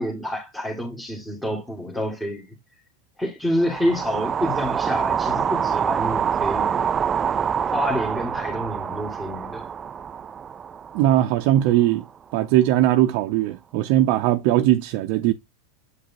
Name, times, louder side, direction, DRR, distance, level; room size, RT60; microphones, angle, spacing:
voice 1, 0.0-2.5 3.2-6.8 7.7-9.7, equal, 5° left, 1.8 m, -28 dB
sound 1, 3.6-11.8, right 7 dB, 25° right, 0.3 m, -26 dB
voice 2, 10.9-12.0 12.3-15.3, right 13 dB, 55° right, 0.6 m, -19 dB
8.2 x 5.1 x 2.7 m
supercardioid pair, 125°, 0 cm